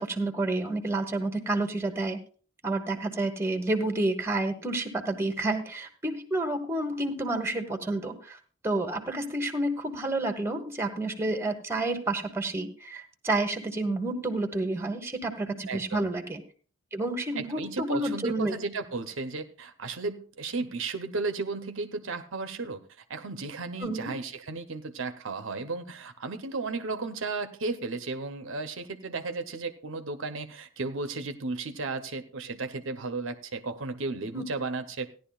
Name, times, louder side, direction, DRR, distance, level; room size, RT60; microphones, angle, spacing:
voice 1, 0.0-2.2 2.6-8.4 8.6-16.4 16.9-18.5 23.8-24.1 34.3-34.4, right 2 dB, 10° right, 6 dB, 1.2 m, -29 dB
voice 2, 15.7-16.1 17.4-22.8 23.1-35.1, right 3 dB, 65° right, 8 dB, 0.8 m, -34 dB
16.0 x 11.0 x 2.3 m, 0.41 s
head